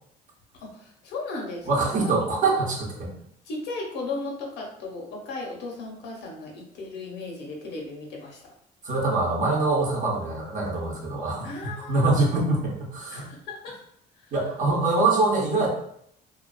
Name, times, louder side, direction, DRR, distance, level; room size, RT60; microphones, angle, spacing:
voice 1, 0.5-2.1 3.4-8.4 11.4-12.4 13.1-13.8 14.2-14.3, left 3 dB, 85° left, 0 dB, 0.8 m, -36 dB
voice 2, 1.7-3.1 8.8-11.5 11.9-13.3 14.3-15.7, right 3 dB, 50° right, -2 dB, 0.8 m, -24 dB
2.4 x 2.3 x 2.2 m, 0.70 s
cardioid pair, 110°, 17 cm